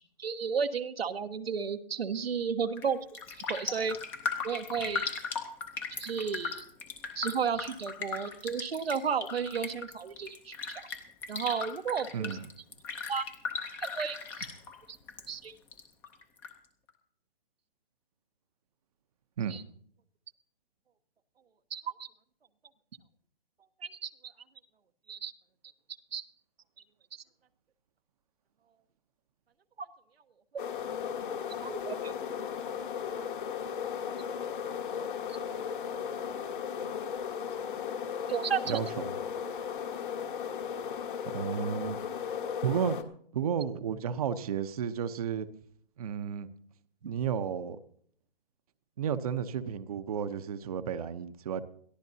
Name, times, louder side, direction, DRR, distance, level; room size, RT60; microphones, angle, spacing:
voice 1, 0.2-3.0 3.5-4.0 4.4-5.1 6.0-6.6 7.1-10.5 11.3-12.4 13.1-13.2 13.8-14.5 14.9-15.0 15.3-15.5 19.5-19.6 21.7-22.1 24.0-24.3 25.1-25.3 26.1-26.3 27.1-27.2 29.8-29.9 31.6-32.1 35.3-35.4 38.3-38.8 47.0-47.1, right 6 dB, 90° right, 8 dB, 1.2 m, -33 dB
Raindrop, 2.7-2.9 3.1-15.2 15.5-16.5 16.9-17.0, left 5 dB, 5° left, 0.6 m, -38 dB
voice 2, 12.1-12.5 19.4-19.6 38.7-39.2 41.3-42.0 42.6-43.0 43.3-45.5 46.0-46.5 47.1-47.8 49.0-51.6, right 8 dB, 40° right, 11 dB, 0.7 m, -32 dB
sound 1, 30.6-43.0, left 7 dB, 55° left, 1.6 m, -36 dB
21.5 x 14.0 x 2.8 m, 0.62 s
hypercardioid pair, 165°, 30 cm